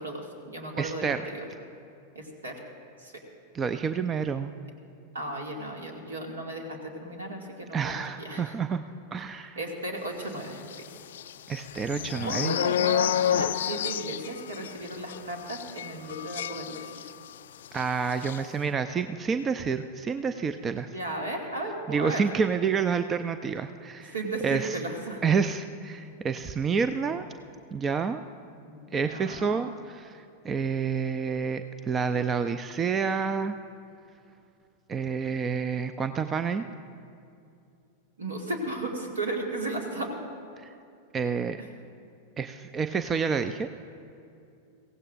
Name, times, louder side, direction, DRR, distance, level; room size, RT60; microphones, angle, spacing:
voice 1, 0.0-1.5 2.1-2.5 3.0-3.1 5.1-8.5 9.6-10.9 12.2-17.1 20.9-22.2 24.1-25.2 28.6-29.6 38.2-40.2 41.6-41.7, right 2 dB, 70° right, 1 dB, 2.1 m, -35 dB
voice 2, 0.8-1.2 3.5-4.5 7.7-8.8 9.1-9.6 11.5-12.6 17.7-20.9 21.9-24.1 24.4-24.8 25.2-27.3 27.7-28.2 28.9-33.6 34.9-36.7 41.1-41.6 42.4-43.7, right 6 dB, 20° right, 10 dB, 0.4 m, -28 dB
sound 1, 10.6-17.4 17.6-17.8 18.1-18.4, left 10 dB, 60° left, 0.3 m, -30 dB
23.0 x 16.5 x 2.5 m, 2.6 s
figure-of-eight pair, 90°, 0 cm